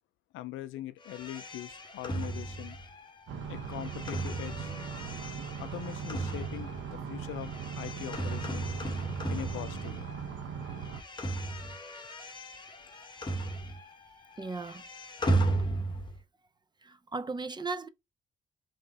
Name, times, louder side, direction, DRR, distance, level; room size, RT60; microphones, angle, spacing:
voice 1, 0.3-2.8 3.5-4.7 5.6-8.7 9.3-10.1, left 14 dB, 85° left, 0.5 m, -42 dB
sound 1, 1.0-10.3 10.6-14.0 14.3-16.2, right 2 dB, 25° left, 1.0 m, -35 dB
sound 2, 3.3-11.0, right 6 dB, 70° right, 0.9 m, -39 dB
voice 2, 14.4-14.8 16.9-17.9, right 3 dB, 20° right, 0.5 m, -36 dB
3.4 x 3.2 x 3.8 m
cardioid pair, 90°, 20 cm